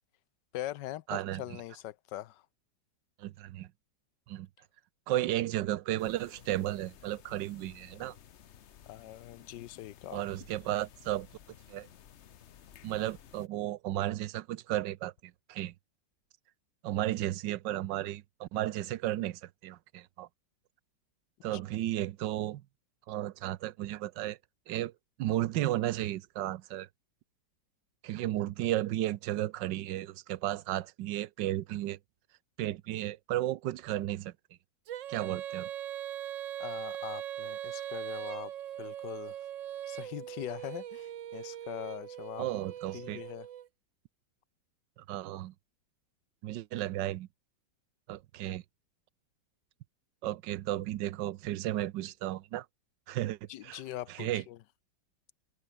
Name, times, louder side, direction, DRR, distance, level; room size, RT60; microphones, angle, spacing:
voice 1, 0.5-2.4 8.9-10.2 21.5-21.6 36.6-38.5 38.8-39.4 39.9-42.5 42.9-43.5 53.5-54.6, left 14 dB, 75° left, 1.3 m, -42 dB
voice 2, 1.1-1.4 3.2-3.7 4.3-4.5 5.1-8.1 10.1-11.3 11.7-11.9 12.8-15.7 16.8-20.3 21.4-22.6 23.1-24.4 24.7-24.9 25.2-26.9 28.0-32.0 32.6-34.3 35.1-35.7 42.4-43.2 45.0-45.5 46.4-47.3 48.1-48.6 50.2-52.7 53.1-53.4 53.6-53.8 54.2-54.4, right 14 dB, 75° right, 1.3 m, -34 dB
sound 1, 6.0-13.5, left 9 dB, 50° left, 0.8 m, -56 dB
Female singing, 34.9-43.7, right 11 dB, 60° right, 0.8 m, -40 dB
omnidirectional pair, 2.0 m